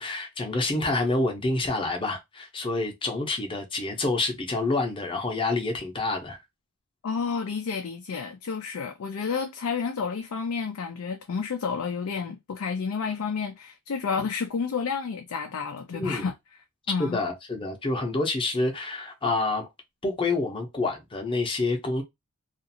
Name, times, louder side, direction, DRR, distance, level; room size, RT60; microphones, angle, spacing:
voice 1, 0.0-6.4 15.9-16.3 17.0-19.7 20.0-22.0, left 2 dB, 25° left, 0.7 m, -28 dB
voice 2, 7.0-16.3 16.9-17.2, left 5 dB, 70° left, 0.4 m, -30 dB
2.5 x 2.4 x 2.7 m
head